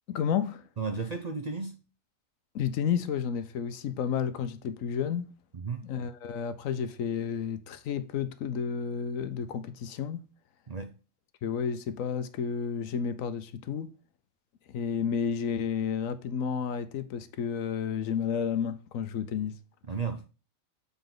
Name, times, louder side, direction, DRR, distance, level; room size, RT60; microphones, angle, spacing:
voice 1, 0.1-0.7 2.5-5.4 5.8-10.2 11.4-13.9 14.7-19.6, left 7 dB, 85° left, 1.1 m, -31 dB
voice 2, 0.8-1.8 5.6-5.9 10.7-10.9 19.9-20.3, right 4 dB, 45° right, 0.5 m, -33 dB
7.0 x 3.9 x 3.8 m
omnidirectional pair, 1.4 m